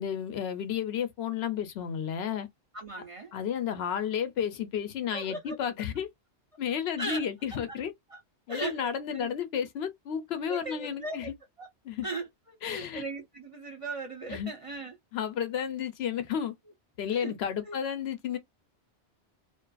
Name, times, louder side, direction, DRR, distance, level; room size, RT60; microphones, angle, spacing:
voice 1, 0.0-2.5 3.3-6.1 6.6-7.9 8.5-11.3 11.9-12.1 12.6-13.0 14.3-14.5 15.1-16.5 17.0-18.4, left 8 dB, 70° left, 0.8 m, -32 dB
voice 2, 2.7-3.3 5.1-5.6 7.0-7.8 8.1-8.2 8.5-9.3 10.5-11.3 11.6-11.7 12.0-15.0 17.1-17.3 17.6-17.8, right 3 dB, 40° right, 0.6 m, -38 dB
2.5 x 2.4 x 2.2 m
omnidirectional pair, 1.1 m